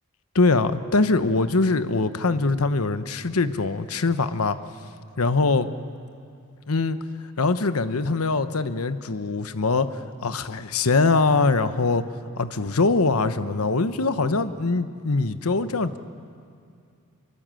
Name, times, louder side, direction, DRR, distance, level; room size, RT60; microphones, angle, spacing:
voice 1, 0.3-4.6 5.2-5.7 6.7-7.0 7.4-12.0 12.4-16.0, left 3 dB, 90° left, 11 dB, 1.0 m, -22 dB
26.0 x 23.0 x 7.7 m, 2.4 s
head